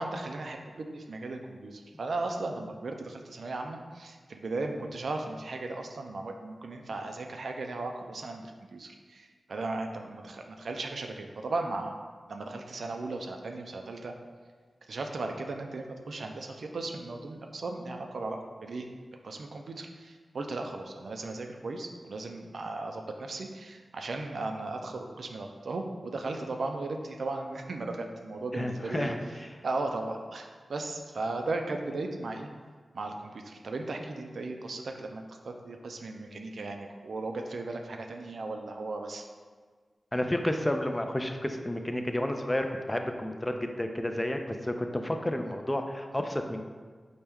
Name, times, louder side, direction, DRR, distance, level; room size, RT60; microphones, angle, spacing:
voice 1, 0.0-12.0 12.3-14.1 14.9-18.9 19.2-29.1 29.6-32.5 32.9-39.2, right 2 dB, 80° right, 4 dB, 0.3 m, -36 dB
voice 2, 28.5-29.5 40.1-46.6, left 1 dB, 20° left, 5 dB, 0.4 m, -31 dB
4.4 x 2.1 x 3.4 m, 1.5 s
cardioid pair, 45°, 0 cm